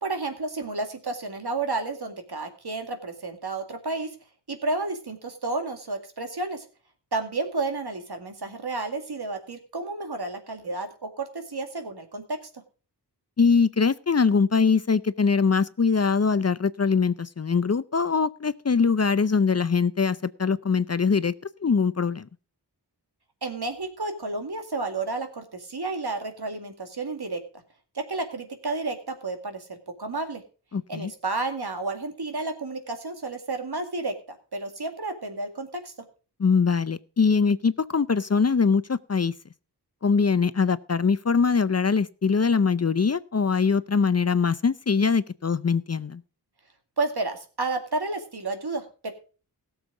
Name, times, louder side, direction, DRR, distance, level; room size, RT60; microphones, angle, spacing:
voice 1, 0.0-4.2 4.5-6.7 7.1-12.4 23.4-27.4 27.9-30.4 30.9-35.9 47.0-49.1, right 3 dB, 70° right, 6 dB, 2.2 m, -31 dB
voice 2, 13.4-21.3 21.6-22.3 30.7-31.1 36.4-39.3 40.0-46.2, left 5 dB, 40° left, 16 dB, 0.5 m, -22 dB
17.0 x 7.2 x 4.7 m, 0.37 s
wide cardioid pair, 55°, 41 cm